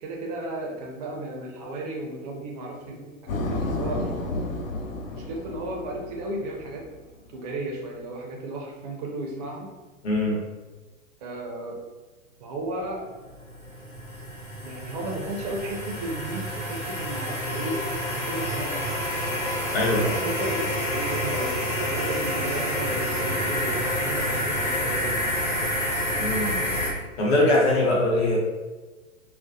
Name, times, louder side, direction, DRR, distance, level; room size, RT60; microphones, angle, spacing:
voice 1, 0.0-4.1 5.1-6.9 7.3-9.7 11.2-11.8 12.4-13.1 14.6-19.3 20.0-25.7, right 2 dB, 30° right, 0 dB, 0.4 m, -34 dB
sound 1, 3.3-7.0, left 2 dB, 75° left, 0.6 m, -31 dB
voice 2, 10.0-10.4 19.7-20.3 26.2-26.7 27.2-28.4, left 1 dB, 50° left, -3 dB, 0.9 m, -22 dB
sound 2, 13.1-26.9, equal, 90° left, 1.2 m, -28 dB
2.3 x 2.0 x 2.6 m, 1.2 s
figure-of-eight pair, 110°, 40 cm